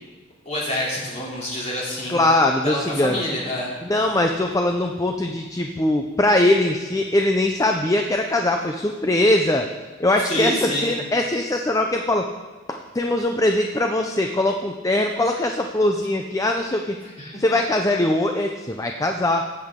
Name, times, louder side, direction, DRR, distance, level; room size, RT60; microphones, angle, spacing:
voice 1, 0.4-2.2 2.6-3.7 10.2-11.0 17.0-17.4, left 1 dB, 35° left, -5 dB, 3.1 m, -27 dB
voice 2, 2.1-3.2 3.9-9.7 10.0-12.3 12.7-17.0 17.4-19.5, left 1 dB, 15° left, 4 dB, 0.5 m, -21 dB
17.0 x 8.0 x 3.7 m, 1.3 s
head